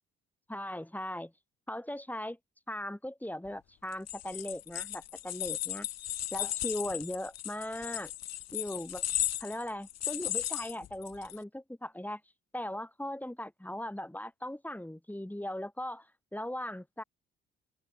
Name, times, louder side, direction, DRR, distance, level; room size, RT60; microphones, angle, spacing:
voice 1, 0.5-1.3 1.7-2.4 2.7-5.9 6.3-8.1 8.5-9.0 9.4-12.2 12.5-16.1 16.3-17.0, left 1 dB, 5° left, 3.2 m, -38 dB
sound 1, 3.9-11.4, left 13 dB, 60° left, 1.8 m, -36 dB
figure-of-eight pair, 45°, 30 cm